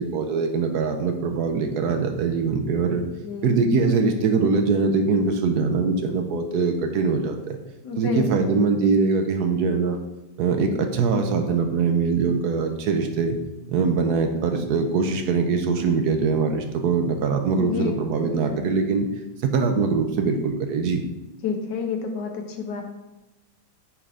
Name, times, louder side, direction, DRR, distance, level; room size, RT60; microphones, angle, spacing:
voice 1, 0.0-3.0 3.4-7.6 8.0-10.0 10.4-13.4 13.7-19.1 19.4-21.0, right 4 dB, 70° right, 5 dB, 1.2 m, -22 dB
voice 2, 7.8-8.5 17.4-17.9 18.4-18.8 21.4-22.8, left 5 dB, 80° left, 3 dB, 1.5 m, -30 dB
9.5 x 3.7 x 3.4 m, 1.0 s
omnidirectional pair, 1.8 m